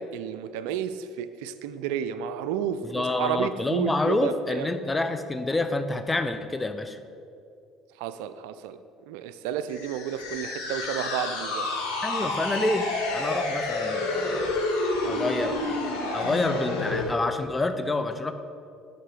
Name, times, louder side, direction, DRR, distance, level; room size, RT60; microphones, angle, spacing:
voice 1, 0.0-4.7 8.0-8.8 9.1-11.7, right 8 dB, 80° right, 12 dB, 0.3 m, -31 dB
voice 2, 2.8-7.0 12.0-14.5 15.0-18.3, left 2 dB, 20° left, 8 dB, 0.6 m, -28 dB
sound 1, 9.7-17.1, left 2 dB, 90° left, 0.9 m, -29 dB
6.4 x 4.1 x 6.2 m, 2.4 s
hypercardioid pair, 65°, 0 cm